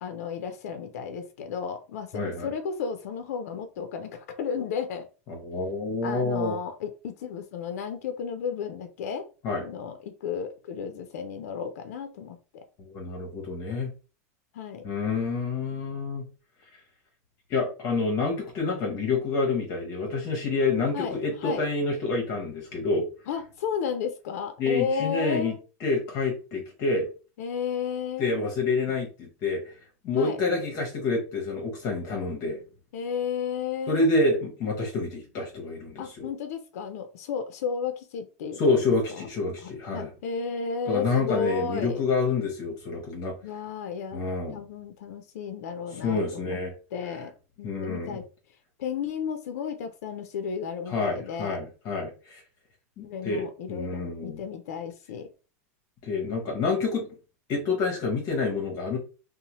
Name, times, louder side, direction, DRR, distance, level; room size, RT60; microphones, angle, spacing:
voice 1, 0.0-5.1 6.0-9.2 9.6-12.4 14.5-14.8 20.9-21.6 23.3-25.6 27.4-28.4 30.2-30.4 32.9-34.1 36.0-38.6 39.1-39.3 39.9-42.0 43.4-44.2 44.5-46.6 46.9-47.3 47.6-48.2 48.8-51.6 53.0-55.3, left 6 dB, 80° left, 7 dB, 0.5 m, -33 dB
voice 2, 2.1-2.5 5.3-6.6 9.4-9.6 12.9-13.9 14.8-16.2 17.5-23.1 24.6-27.1 28.2-29.7 30.0-32.6 33.9-36.3 38.6-40.1 40.9-43.3 44.1-44.6 45.9-46.7 47.6-48.2 50.9-52.4 53.0-54.4 56.0-57.1 57.5-59.0, left 3 dB, 45° left, 1 dB, 0.8 m, -28 dB
2.7 x 2.0 x 2.9 m, 0.35 s
supercardioid pair, 145°, 8 cm